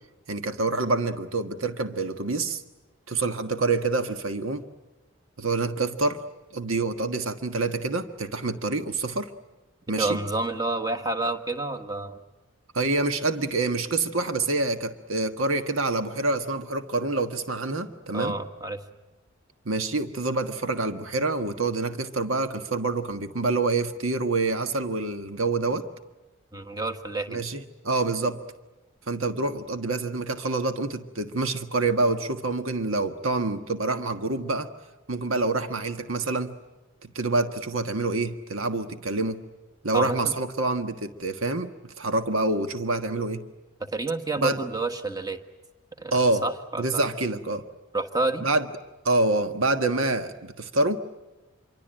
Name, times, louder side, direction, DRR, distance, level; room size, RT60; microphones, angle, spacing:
voice 1, 0.3-2.6 3.1-4.6 5.4-6.2 6.5-9.3 9.9-10.2 12.7-18.3 19.6-25.9 27.3-28.4 29.1-34.7 35.1-36.6 37.1-39.4 39.8-41.7 42.0-43.5 44.4-44.6 46.1-46.4 46.8-47.6 48.4-48.6 49.0-51.0, right 3 dB, 80° right, 8 dB, 1.5 m, -26 dB
voice 2, 10.0-12.2 18.1-18.8 26.5-27.4 39.9-40.3 43.8-45.4 46.0-47.1 47.9-48.5, right 2 dB, 20° right, 7 dB, 1.5 m, -29 dB
27.0 x 24.0 x 8.9 m, 1.1 s
head